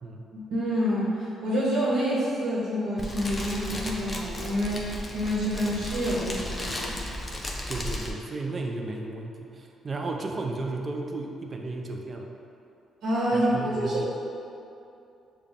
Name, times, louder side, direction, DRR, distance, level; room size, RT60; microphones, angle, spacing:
voice 1, 0.3-7.0 13.0-14.1, equal, 80° right, -7 dB, 1.1 m, -27 dB
Fire, 3.0-8.1, left 1 dB, 25° left, 0.6 m, -34 dB
voice 2, 7.7-12.3 13.3-14.1, right 2 dB, 35° right, 2 dB, 0.5 m, -34 dB
6.5 x 2.3 x 3.6 m, 2.7 s
cardioid pair, 90°, 0 cm